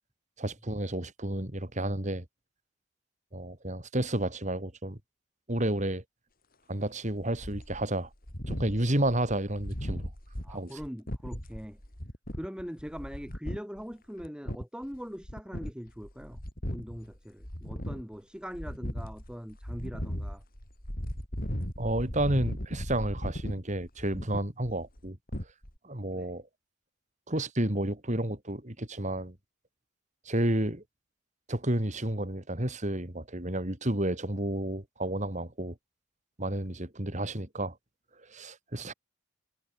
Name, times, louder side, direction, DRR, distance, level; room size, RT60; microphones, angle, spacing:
voice 1, 0.4-2.2 3.3-5.0 5.5-6.0 6.7-8.1 8.5-10.1 10.5-10.8 21.8-25.2 25.8-26.4 27.3-29.3 30.2-30.8 31.5-35.7 36.4-37.7 38.3-38.9, right 1 dB, 35° right, 3.0 m, -31 dB
sound 1, 7.1-13.9 14.2-15.0 15.2-17.2 17.4-18.1 18.5-25.8, equal, 45° left, 6.7 m, -37 dB
voice 2, 10.4-11.8 12.4-16.4 16.7-20.4 26.1-26.3 38.8-38.9, equal, 5° right, 6.2 m, -42 dB
head